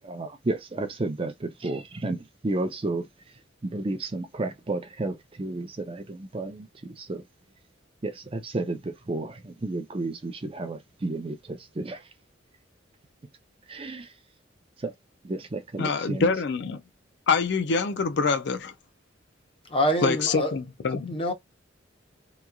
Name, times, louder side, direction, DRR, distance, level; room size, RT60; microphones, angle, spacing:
voice 1, 0.0-3.1 3.6-7.2 8.0-12.1 13.7-14.1 14.8-14.9 15.2-16.3, right 2 dB, 30° right, 0.5 m, -32 dB
voice 2, 15.8-16.8 17.3-18.7 20.0-21.2, left 4 dB, 60° left, 0.4 m, -25 dB
voice 3, 19.7-20.6 21.1-21.3, equal, 30° left, 0.8 m, -25 dB
3.0 x 2.3 x 2.3 m
head